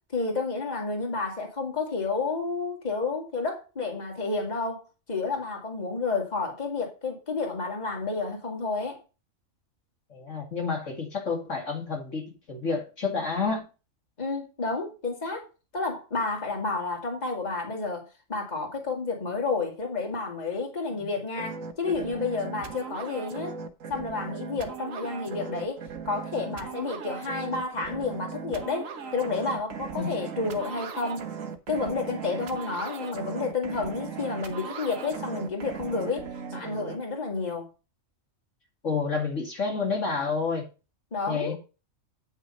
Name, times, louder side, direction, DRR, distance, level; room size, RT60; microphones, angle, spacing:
voice 1, 0.1-4.8 5.1-9.0 14.2-15.5 15.7-23.5 23.9-31.2 31.7-36.2 36.5-37.7 41.1-41.6, left 4 dB, 30° left, 2.5 m, -30 dB
voice 2, 10.1-13.6 21.0-21.1 30.0-30.1 38.8-40.6 41.3-41.6, left 4 dB, 60° left, 2.7 m, -29 dB
sound 1, 21.4-37.0, right 6 dB, 70° right, 1.5 m, -38 dB
9.3 x 6.2 x 5.4 m
omnidirectional pair, 1.4 m